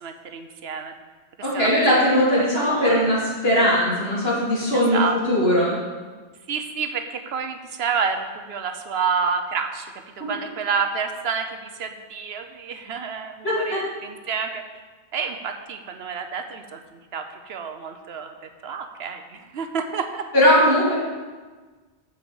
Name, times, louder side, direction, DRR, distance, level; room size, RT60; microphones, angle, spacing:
voice 1, 0.0-0.9 1.4-1.7 2.4-2.9 4.7-5.2 6.5-14.6 15.1-16.8 17.1-18.3 18.6-20.3, right 6 dB, 70° right, 7 dB, 0.9 m, -29 dB
voice 2, 1.4-5.0 5.3-5.7 10.2-10.3 13.4-13.8 20.3-20.9, equal, 65° left, -7 dB, 3.3 m, -19 dB
7.3 x 6.0 x 6.9 m, 1.4 s
omnidirectional pair, 1.1 m